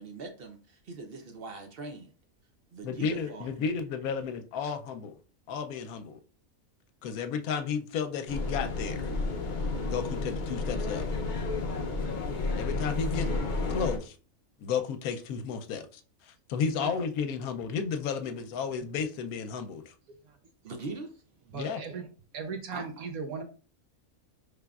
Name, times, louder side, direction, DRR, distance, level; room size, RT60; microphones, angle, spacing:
voice 1, 0.0-2.1 2.7-3.5 16.7-17.0 20.6-21.1 22.7-22.8, right 3 dB, 55° right, 0.7 m, -41 dB
voice 2, 2.8-5.2 5.5-6.2 7.0-9.1 9.8-11.1 12.5-13.3 13.7-14.2 14.6-19.9 21.5-21.8, left 6 dB, 80° left, 1.0 m, -33 dB
sound 1, 8.3-14.0, left 3 dB, 55° left, 0.5 m, -31 dB
voice 3, 21.5-22.1 22.3-23.4, right 5 dB, 85° right, 1.2 m, -37 dB
5.0 x 3.3 x 2.3 m
omnidirectional pair, 1.5 m